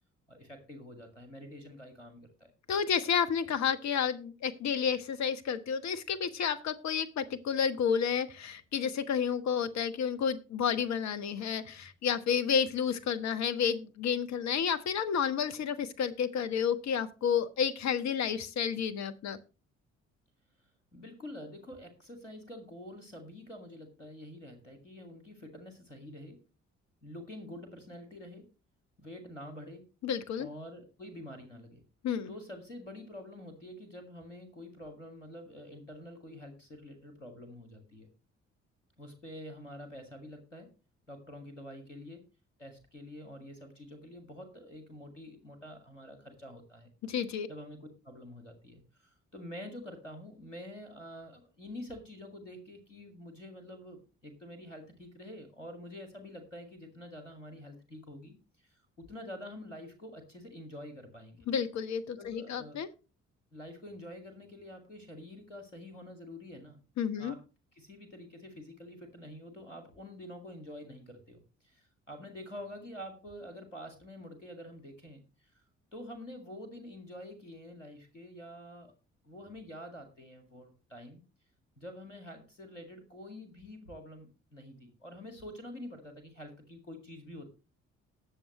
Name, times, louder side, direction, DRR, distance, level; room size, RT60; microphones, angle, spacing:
voice 1, 0.3-2.5 20.9-26.4 27.0-28.5 29.0-29.9 30.4-31.8 32.3-38.1 39.0-40.8 41.1-42.2 42.6-46.9 47.5-61.5 62.1-62.8 63.5-66.8 67.2-67.4 67.7-75.5 75.9-78.9 79.2-81.2 81.8-87.5, left 1 dB, 85° left, 6 dB, 2.0 m, -47 dB
voice 2, 2.7-19.4 30.0-30.5 32.0-32.3 47.0-47.5 61.5-62.9 67.0-67.4, left 7 dB, 50° left, 12 dB, 1.3 m, -31 dB
19.0 x 7.2 x 3.0 m, 0.32 s
figure-of-eight pair, 45°, 36 cm